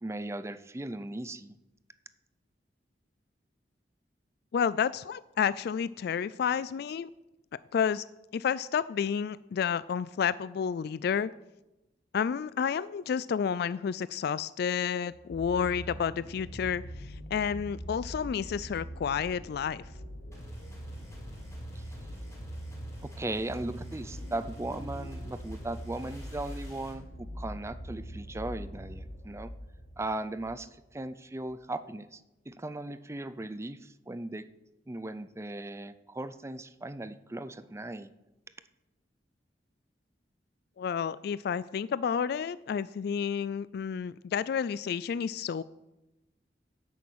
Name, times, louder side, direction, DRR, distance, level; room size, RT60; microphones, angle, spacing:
voice 1, 0.0-1.5 21.8-21.9 23.0-29.5 30.0-32.2 32.5-34.4 34.9-38.1, right 2 dB, 15° right, 13 dB, 0.5 m, -38 dB
voice 2, 4.5-7.1 7.7-8.0 8.3-11.3 12.1-19.8 40.8-45.6, left 7 dB, 60° left, 18 dB, 0.3 m, -30 dB
sound 1, 15.1-30.7 31.5-31.6, equal, 90° left, 1.7 m, -43 dB
sound 2, 20.3-27.0, equal, 15° left, 4.1 m, -49 dB
10.5 x 7.1 x 7.9 m, 0.97 s
head